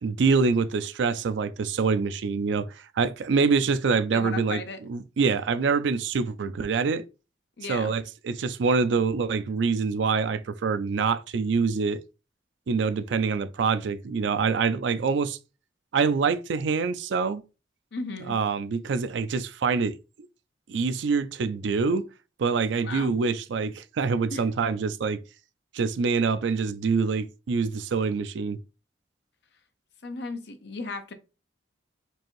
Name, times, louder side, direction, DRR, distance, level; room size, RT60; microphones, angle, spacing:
voice 1, 0.0-4.6 4.9-7.0 7.7-12.0 12.7-15.4 15.9-17.4 18.3-19.9 20.7-22.0 22.4-25.2 25.7-28.6, right 5 dB, 80° right, 0.4 m, -25 dB
voice 2, 4.1-4.8 7.6-7.9 17.9-18.4 22.8-23.2 24.3-24.4 30.0-31.1, left 3 dB, 65° left, 0.6 m, -35 dB
4.5 x 2.6 x 3.0 m
head